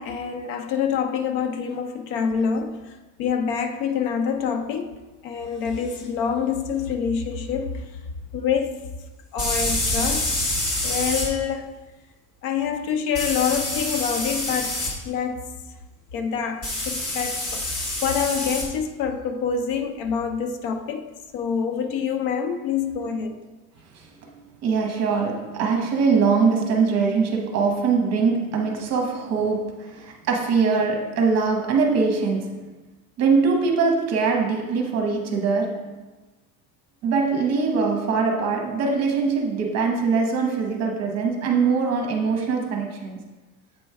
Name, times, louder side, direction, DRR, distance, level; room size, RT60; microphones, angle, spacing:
voice 1, 0.0-2.9 3.2-7.9 8.3-8.8 9.3-10.3 10.6-11.8 12.4-15.5 16.1-23.4, left 7 dB, 70° left, 0.6 m, -26 dB
sound 1, 5.9-6.0 9.4-11.3 13.1-14.9 16.6-18.7, left 1 dB, 40° left, 1.6 m, -26 dB
voice 2, 23.9-32.7 33.2-36.0 37.0-43.2, right 5 dB, 45° right, 1.0 m, -22 dB
7.8 x 3.1 x 4.6 m
cardioid pair, 175°, 37 cm